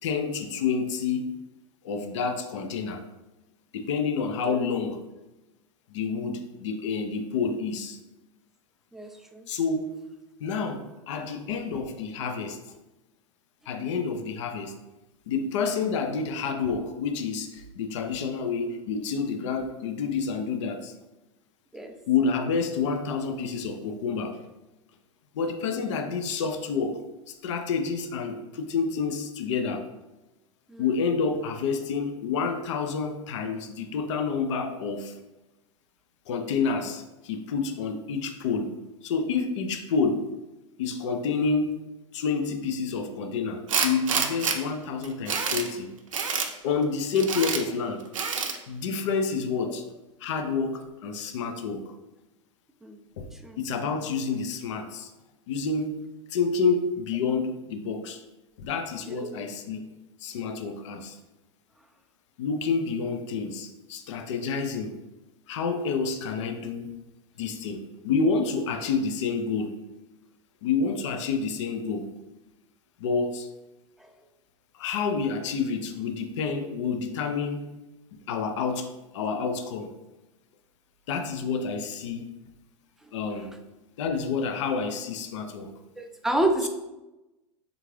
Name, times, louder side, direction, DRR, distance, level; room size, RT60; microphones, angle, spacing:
voice 1, 0.0-1.4 1.8-3.0 3.7-5.0 5.9-8.0 9.5-10.0 10.4-12.6 13.7-14.7 15.3-20.9 22.1-24.5 25.3-29.9 30.8-35.1 36.3-38.7 39.0-40.3 40.8-41.8 42.1-45.9 46.6-48.0 48.7-49.8 50.2-51.8 53.2-53.3 53.6-55.1 55.5-56.0 56.3-58.2 58.6-59.9 60.2-61.2 62.4-65.0 65.5-66.9 67.4-69.7 70.6-72.1 73.0-73.5 74.7-77.7 78.1-79.9 81.1-82.3 83.1-83.5 84.0-85.7 86.6-86.7, left 5 dB, 65° left, 6 dB, 0.4 m, -29 dB
voice 2, 8.9-9.4 21.7-21.9 30.7-30.8 52.8-53.0 53.4-53.6 59.2-59.3 86.0-86.7, right 1 dB, ahead, 4 dB, 0.3 m, -28 dB
Tools, 43.7-44.6 45.0-45.7 46.1-46.5 47.2-47.6 48.1-48.6, right 5 dB, 85° right, 0.4 m, -27 dB
3.5 x 2.5 x 3.1 m, 1.0 s
hypercardioid pair, 90°, 16 cm